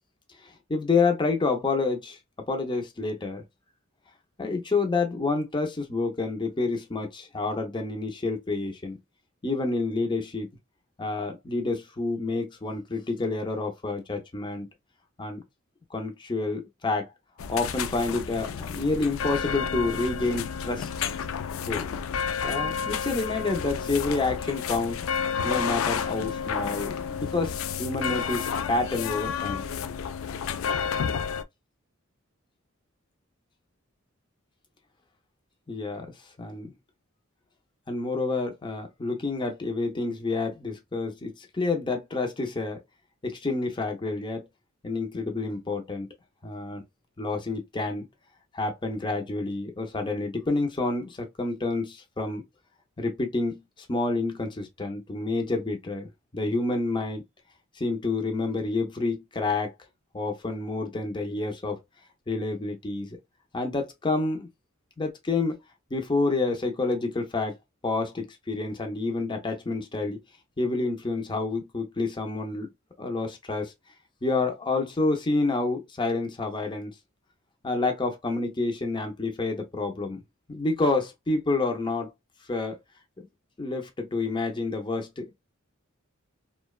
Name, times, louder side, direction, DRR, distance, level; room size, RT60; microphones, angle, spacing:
voice 1, 0.4-2.2 2.5-3.4 4.4-9.0 9.4-10.5 11.0-14.7 15.2-15.4 15.9-17.1 17.5-20.9 21.7-25.0 25.4-29.6 35.7-36.1 36.4-36.7 37.9-42.8 43.2-44.4 44.8-46.1 46.4-46.8 47.2-48.1 48.5-52.4 53.0-57.2 57.8-59.7 60.1-61.8 62.3-63.2 63.5-64.5 65.0-65.6 65.9-67.5 67.8-70.2 70.6-72.7 73.0-73.7 74.2-76.9 77.6-80.2 80.5-82.1 82.5-82.8 83.2-83.3 83.6-85.3, left 3 dB, 25° left, 0.6 m, -28 dB
sound 1, 17.4-31.4, left 7 dB, 70° left, 0.3 m, -31 dB
2.7 x 2.1 x 2.2 m
head